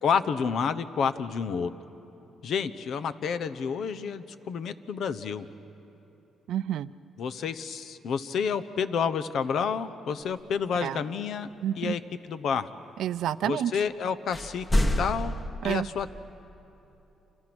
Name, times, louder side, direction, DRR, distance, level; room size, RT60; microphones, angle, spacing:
voice 1, 0.0-1.7 2.4-5.4 7.2-11.5 11.8-12.0 12.3-12.7 13.4-15.4 15.6-16.1, left 6 dB, 65° left, 12 dB, 1.0 m, -29 dB
voice 2, 6.5-6.9 10.8-11.0 11.6-12.0 13.0-13.7 15.6-15.9, right 10 dB, 75° right, 15 dB, 0.6 m, -29 dB
sound 1, 14.3-15.5, left 1 dB, 25° left, 1.7 m, -26 dB
30.0 x 27.0 x 6.2 m, 3.0 s
cardioid pair, 90°, 0 cm